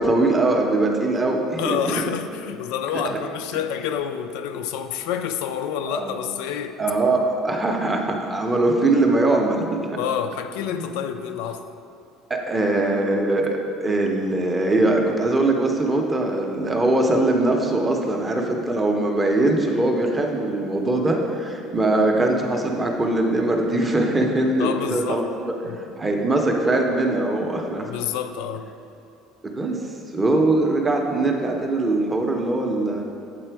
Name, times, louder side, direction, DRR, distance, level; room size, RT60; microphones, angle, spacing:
voice 1, 0.0-1.8 3.5-3.6 5.9-6.2 6.8-10.0 10.8-11.0 12.3-27.9 29.4-29.8 30.1-33.0, right 2 dB, 10° right, 1 dB, 0.5 m, -22 dB
voice 2, 1.6-6.8 10.0-11.7 24.6-25.3 25.7-25.8 27.8-28.7, left 8 dB, 75° left, 8 dB, 0.3 m, -28 dB
7.5 x 4.1 x 4.5 m, 2.6 s
cardioid pair, 175°, 0 cm